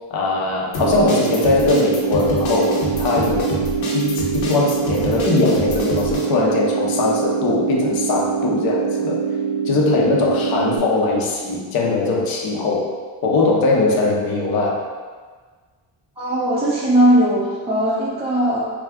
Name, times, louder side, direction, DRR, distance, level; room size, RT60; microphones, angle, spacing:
voice 1, 0.1-3.6 3.9-9.2 9.7-12.9 13.2-14.8, left 3 dB, 45° left, -2 dB, 0.7 m, -20 dB
sound 1, 0.7-6.2, left 1 dB, 70° left, 0.9 m, -28 dB
sound 2, 0.8-10.8, right 7 dB, 70° right, 0.7 m, -24 dB
voice 2, 16.2-18.7, right 1 dB, 10° right, -6 dB, 0.5 m, -18 dB
2.4 x 2.3 x 3.4 m, 1.5 s
hypercardioid pair, 50°, 50 cm